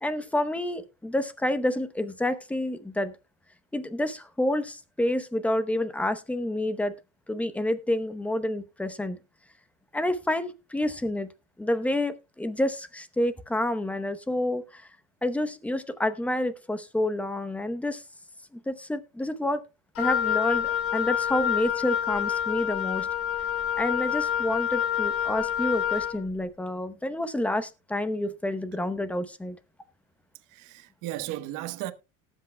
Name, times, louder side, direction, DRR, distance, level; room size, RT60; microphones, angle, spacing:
voice 1, 0.0-3.1 3.7-6.9 7.3-9.2 9.9-11.3 11.6-14.9 15.2-18.0 18.7-19.6 20.0-23.1 23.8-29.6, left 1 dB, 5° left, 0.8 m, -29 dB
Wind instrument woodwind instrument, 20.0-26.2, left 9 dB, 35° left, 1.2 m, -27 dB
voice 2, 30.5-31.9, right 14 dB, 55° right, 1.2 m, -35 dB
18.5 x 8.1 x 2.2 m
supercardioid pair, 140°, 37 cm